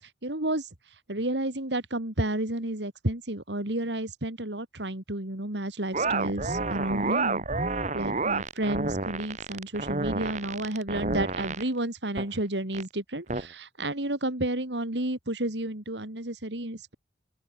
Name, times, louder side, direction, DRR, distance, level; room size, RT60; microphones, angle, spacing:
voice 1, 0.0-7.4 7.9-16.9, right 1 dB, 90° right, 3.5 m, -31 dB
sound 1, 5.9-11.6 12.1-12.3 12.7-12.8 13.3-13.5, right 3 dB, 45° right, 2.0 m, -29 dB
open air
head